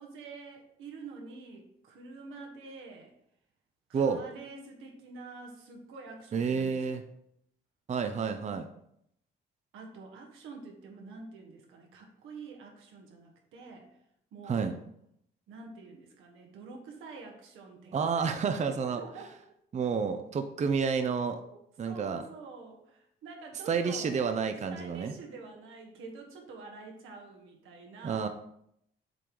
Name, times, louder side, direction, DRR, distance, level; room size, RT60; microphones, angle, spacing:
voice 1, 0.0-3.1 3.9-7.0 9.7-14.0 14.3-14.8 15.5-19.3 21.4-24.2 24.5-28.3, right 4 dB, 90° right, 1 dB, 1.5 m, -47 dB
voice 2, 6.3-7.0 7.9-8.7 14.5-14.7 17.9-19.0 19.7-21.4 21.8-22.2 23.7-25.1 28.0-28.3, right 5 dB, 35° right, 7 dB, 0.6 m, -29 dB
7.6 x 3.1 x 5.2 m, 0.74 s
cardioid pair, 90°, 20 cm